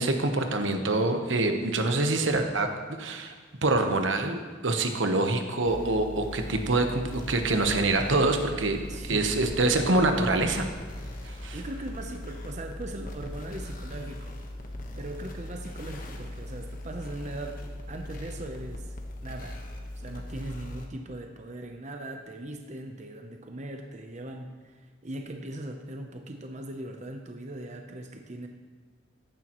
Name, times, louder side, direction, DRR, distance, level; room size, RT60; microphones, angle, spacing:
voice 1, 0.0-2.7 3.0-3.3 3.6-10.7 11.2-11.6, right 2 dB, 80° right, 5 dB, 1.0 m, -25 dB
sound 1, 5.6-20.9, left 1 dB, 45° left, 1.2 m, -39 dB
voice 2, 8.9-9.3 11.5-14.4 14.9-17.6 17.9-19.0 19.2-19.6 20.0-28.5, right 1 dB, 40° right, 4 dB, 0.7 m, -39 dB
15.0 x 10.5 x 3.1 m, 1.4 s
head